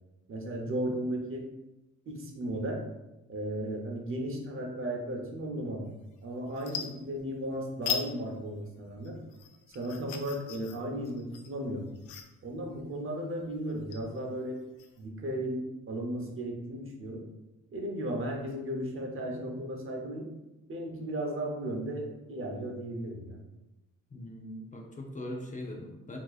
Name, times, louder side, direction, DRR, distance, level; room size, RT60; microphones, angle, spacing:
voice 1, 0.3-1.5 2.1-2.8 3.3-5.9 6.2-9.2 9.7-11.8 12.4-14.6 15.0-17.3 17.7-20.3 20.7-23.4, right 1 dB, 45° right, 1 dB, 0.8 m, -35 dB
sound 1, 6.0-6.2 6.5-7.5 7.8-8.1 8.5-15.0, left 8 dB, 85° left, 0.5 m, -39 dB
voice 2, 24.1-26.2, left 1 dB, 25° left, 0 dB, 0.6 m, -41 dB
4.4 x 2.9 x 2.4 m, 0.98 s
cardioid pair, 90°, 30 cm